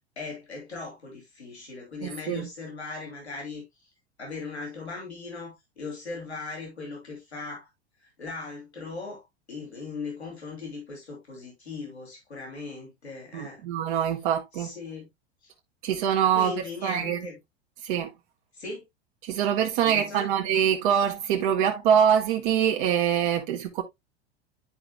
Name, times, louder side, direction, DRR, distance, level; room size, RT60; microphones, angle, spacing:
voice 1, 0.2-3.9 4.2-7.7 8.0-9.2 9.5-13.6 14.5-15.1 15.4-15.5 16.3-17.4 18.5-18.8 19.7-20.3, left 3 dB, 80° left, 2.8 m, -38 dB
voice 2, 2.0-2.5 13.3-14.7 15.8-16.5 16.8-17.2 17.8-18.1 19.2-23.8, right 9 dB, 50° right, 1.1 m, -24 dB
10.5 x 4.9 x 2.3 m
figure-of-eight pair, 85°, 33 cm